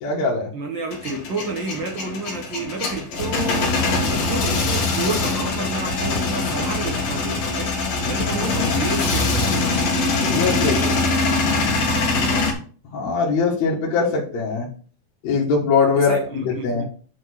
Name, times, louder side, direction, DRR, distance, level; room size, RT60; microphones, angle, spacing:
voice 1, 0.0-0.5 10.2-11.0 12.9-14.7 15.2-16.8, left 4 dB, 55° left, -3 dB, 2.7 m, -21 dB
voice 2, 0.5-3.8 4.0-7.7 8.0-9.8 12.1-12.5 16.0-16.8, right 2 dB, 55° right, 2 dB, 1.4 m, -30 dB
Male speech man speaking / Vehicle / Engine starting, 0.9-12.5, left 3 dB, 75° left, 3.7 m, -22 dB
9.5 x 3.8 x 6.4 m, 0.42 s
omnidirectional pair, 4.0 m